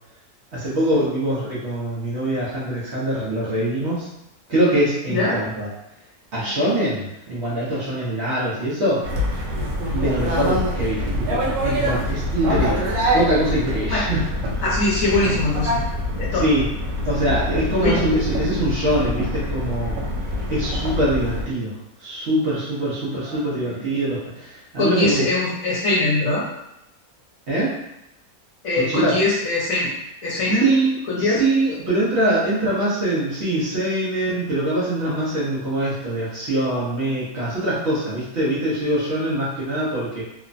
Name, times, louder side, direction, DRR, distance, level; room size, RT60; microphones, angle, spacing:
voice 1, 0.5-4.1 4.5-5.7 6.3-9.0 9.9-12.8 13.1-14.2 16.4-16.6 17.1-20.0 20.5-25.2 27.5-27.7 28.7-29.2 30.5-40.2, right 1 dB, 55° right, -8 dB, 0.9 m, -23 dB
sound 1, 9.0-21.5, left 1 dB, 80° right, 1.1 m, -25 dB
voice 2, 14.6-15.8 16.2-16.5 17.8-17.9 23.2-23.7 24.8-26.5 28.6-29.9 30.2-30.7 31.1-31.4, left 2 dB, 65° left, -6 dB, 1.1 m, -22 dB
3.0 x 2.1 x 2.5 m, 0.86 s
omnidirectional pair, 1.6 m